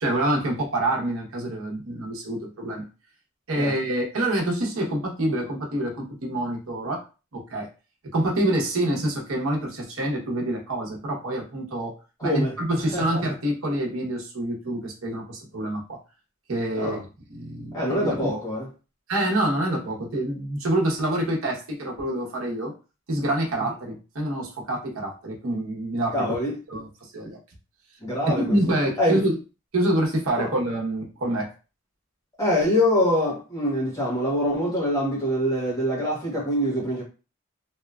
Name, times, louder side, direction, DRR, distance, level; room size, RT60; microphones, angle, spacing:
voice 1, 0.0-2.8 3.5-7.0 7.3-7.7 8.1-11.9 12.2-16.0 16.5-17.0 17.3-18.3 19.1-22.7 23.1-26.3 26.7-27.4 28.4-29.4 29.7-31.5, right 1 dB, 75° right, 0.9 m, -26 dB
voice 2, 12.2-12.5 12.9-13.2 16.7-17.0 17.7-18.7 26.1-26.6 28.0-28.4 29.0-29.2 30.4-30.5 32.4-37.0, left 1 dB, 15° left, 1.2 m, -24 dB
2.8 x 2.2 x 2.3 m
head